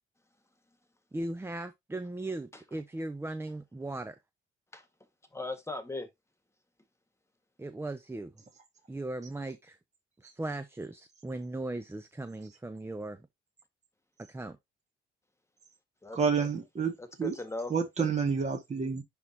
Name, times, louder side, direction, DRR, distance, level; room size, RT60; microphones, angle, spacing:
voice 1, 1.1-4.2 7.6-8.3 8.9-9.8 10.2-13.2 14.3-14.6, right 2 dB, 10° right, 0.7 m, -38 dB
voice 2, 5.3-6.1 16.0-16.5 17.0-17.7, left 2 dB, 15° left, 1.7 m, -38 dB
voice 3, 16.1-16.9 17.2-17.3 17.7-19.0, right 6 dB, 35° right, 1.9 m, -29 dB
10.5 x 3.7 x 2.8 m
cardioid pair, 90°, 20 cm